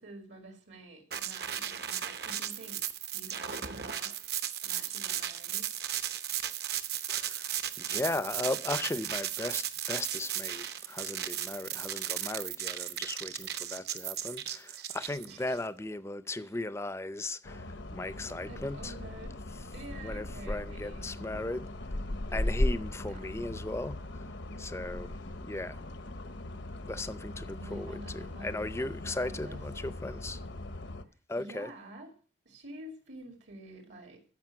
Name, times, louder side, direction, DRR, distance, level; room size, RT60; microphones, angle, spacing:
voice 1, 0.0-2.8 3.1-4.2 4.6-5.7 15.3-15.7 16.4-16.5 18.5-19.4 19.7-21.2 23.1-23.5 27.4-29.6 31.4-32.2 32.4-34.2, right 2 dB, 75° right, 2.3 m, -49 dB
sound 1, 1.1-15.6, right 10 dB, 55° right, 0.9 m, -35 dB
voice 2, 7.1-7.5 7.8-18.9 20.0-21.7 22.3-24.2 24.6-25.1 25.4-25.8 26.8-30.4 31.3-31.7, left 2 dB, 15° left, 0.5 m, -37 dB
sound 2, 17.4-31.0, left 1 dB, 80° left, 1.0 m, -38 dB
13.5 x 5.2 x 7.5 m
head